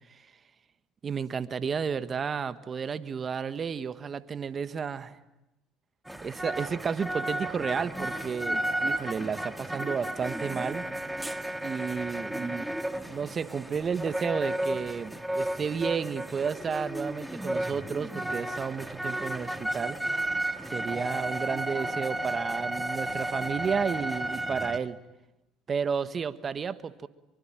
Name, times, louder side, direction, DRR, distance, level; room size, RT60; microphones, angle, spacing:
voice 1, 1.0-5.2 6.2-10.8 11.6-12.7 13.1-20.0 20.7-25.0 25.7-27.1, right 6 dB, 40° right, 12 dB, 1.5 m, -32 dB
sound 1, 6.1-24.8, right 1 dB, 5° right, 1.8 m, -33 dB
25.5 x 24.0 x 9.0 m, 0.94 s
supercardioid pair, 75°, 0 cm